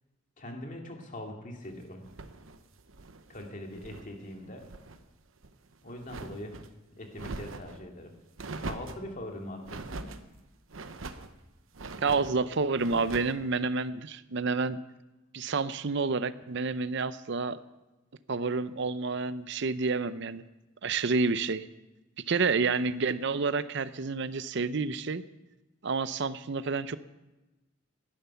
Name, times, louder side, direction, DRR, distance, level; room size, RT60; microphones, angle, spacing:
voice 1, 0.4-2.0 3.3-4.6 5.8-6.5 7.0-8.1 8.6-10.1, left 1 dB, 40° left, 2 dB, 2.5 m, -42 dB
sound 1, 2.0-4.1 4.4-5.0 5.4-6.7 7.1-7.8 8.4-9.1 9.6-10.2 10.7-11.3 11.7-12.4 12.8-13.4, right 3 dB, 90° right, 1.0 m, -42 dB
voice 2, 12.0-14.8 15.3-17.6 18.3-20.4 20.8-21.7 22.3-25.2 25.8-27.0, right 4 dB, 60° right, 14 dB, 0.6 m, -29 dB
17.5 x 11.0 x 5.7 m, 1.0 s
head